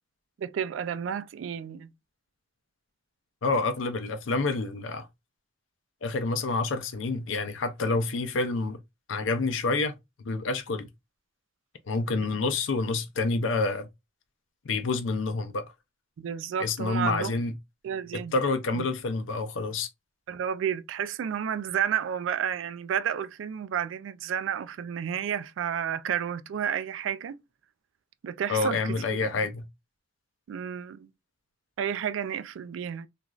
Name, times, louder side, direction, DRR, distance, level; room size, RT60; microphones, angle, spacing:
voice 1, 0.4-1.9 16.2-17.3 17.8-18.3 18.7-18.8 20.3-27.4 28.2-29.3 30.5-31.1 31.8-33.1, right 8 dB, 80° right, 0.3 m, -31 dB
voice 2, 3.4-5.1 6.0-8.8 9.1-9.9 10.2-10.9 11.9-13.9 14.6-15.7 16.6-17.5 18.1-19.9 28.5-29.6, left 3 dB, 90° left, 0.6 m, -28 dB
3.0 x 2.5 x 2.3 m
head